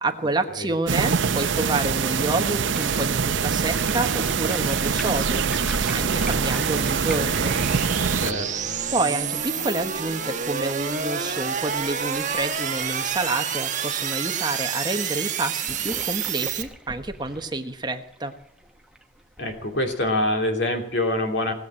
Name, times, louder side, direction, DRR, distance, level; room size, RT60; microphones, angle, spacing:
voice 1, 0.0-5.4 5.9-7.6 8.9-18.3, right 2 dB, 20° right, 6 dB, 1.2 m, -28 dB
sound 1, 0.9-8.3, right 6 dB, 75° right, 0.7 m, -24 dB
sound 2, 2.6-13.6 14.1-14.2 14.4-14.5 15.1-20.1, right 1 dB, 5° right, 0.9 m, -39 dB
sound 3, 4.0-16.6, right 7 dB, 40° right, 1.3 m, -30 dB
voice 2, 8.2-8.7 19.4-21.5, left 1 dB, 60° left, 3 dB, 2.8 m, -25 dB
19.0 x 8.1 x 8.7 m, 0.74 s
head